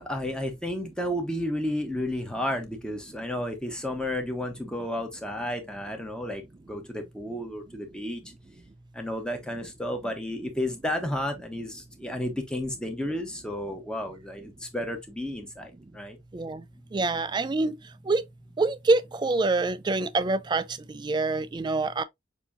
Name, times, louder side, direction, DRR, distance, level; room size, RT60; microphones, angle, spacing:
voice 1, 0.0-6.4 6.7-8.2 8.9-16.2, left 1 dB, 5° left, 0.9 m, -32 dB
voice 2, 16.9-17.8 18.1-18.2 18.6-22.0, right 3 dB, 20° right, 0.3 m, -26 dB
6.7 x 2.7 x 2.6 m
head